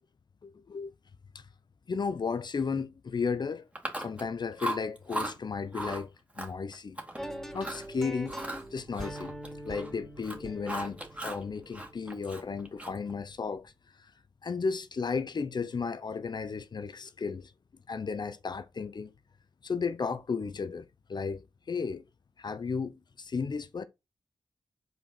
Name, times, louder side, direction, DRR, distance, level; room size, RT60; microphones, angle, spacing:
voice 1, 0.4-0.9 1.3-1.4 1.9-3.6 4.0-7.0 7.5-8.4 8.7-9.3 9.6-13.7 14.4-17.5 17.9-19.1 19.6-22.0 22.4-23.8, left 5 dB, 55° left, 0.7 m, -34 dB
Chewing mastication, 3.8-4.3 4.6-5.3 5.7-6.0 6.4-7.2 7.5-7.9 8.3-9.9 10.2-11.4 11.7-13.1, right 1 dB, 15° right, 2.3 m, -37 dB
sound 1, 7.2-13.2, right 1 dB, 5° left, 3.5 m, -43 dB
5.4 x 4.5 x 5.7 m
supercardioid pair, 40°, 9 cm